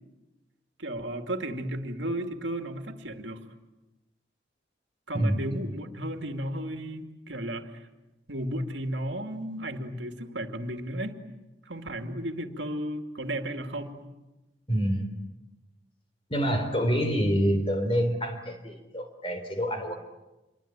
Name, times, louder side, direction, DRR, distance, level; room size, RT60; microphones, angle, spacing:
voice 1, 0.8-3.4 5.1-7.7 8.3-11.2 11.7-14.1, right 1 dB, 85° right, 6 dB, 2.5 m, -34 dB
voice 2, 14.7-15.1 16.3-20.0, equal, 30° left, 6 dB, 3.8 m, -27 dB
27.5 x 23.0 x 9.0 m, 1.0 s
head